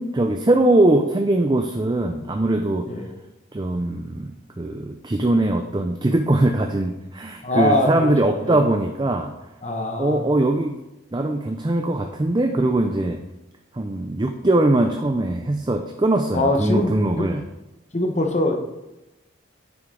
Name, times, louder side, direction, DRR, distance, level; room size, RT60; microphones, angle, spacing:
voice 1, 0.0-2.9 3.5-9.3 10.0-10.8 11.1-13.2 13.7-17.4, right 2 dB, 20° right, 6 dB, 0.4 m, -21 dB
voice 2, 7.4-8.6 9.6-10.2 16.3-17.3 17.9-18.7, left 1 dB, 35° left, 4 dB, 1.0 m, -23 dB
9.8 x 8.0 x 3.8 m, 0.99 s
head